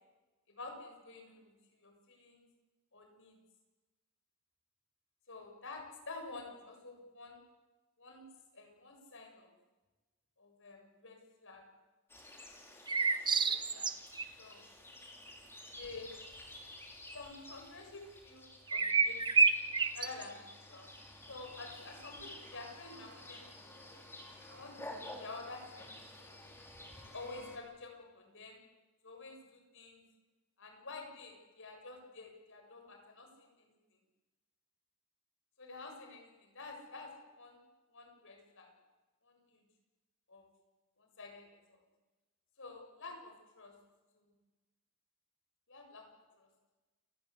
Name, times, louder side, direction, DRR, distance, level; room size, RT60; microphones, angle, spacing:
voice 1, 0.5-2.5 2.9-3.3 5.3-7.4 8.0-8.3 8.5-9.5 10.4-11.6 13.3-13.9 14.4-14.6 15.4-16.2 17.1-19.4 19.9-20.9 21.3-23.7 24.5-24.8 25.2-26.4 27.1-28.6 29.0-30.0 30.6-33.7 35.6-37.6 37.9-38.7 39.2-39.6 40.3-40.4 41.0-41.8 42.6-43.7 44.2-44.3 45.7-46.0 46.4-46.5, left 3 dB, 60° left, 4 dB, 7.1 m, -50 dB
sound 1, 12.1-27.6, left 1 dB, 10° left, 4.4 m, -52 dB
sound 2, 12.9-14.2 18.7-20.2, right 4 dB, 20° right, 1.4 m, -28 dB
29.0 x 20.0 x 8.4 m, 1.2 s
head